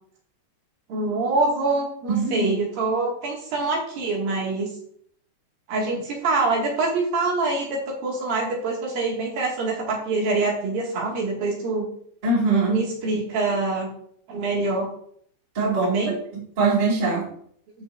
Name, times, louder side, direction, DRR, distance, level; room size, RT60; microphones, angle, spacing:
voice 1, 0.9-4.7 5.7-11.9 12.7-13.9 14.3-14.9 15.8-16.2, right 3 dB, 55° right, -2 dB, 3.4 m, -25 dB
voice 2, 2.1-2.5 12.2-12.8 15.5-16.0 16.3-17.3, right 3 dB, 90° right, -4 dB, 0.4 m, -22 dB
14.0 x 5.7 x 2.6 m, 0.63 s
omnidirectional pair, 5.6 m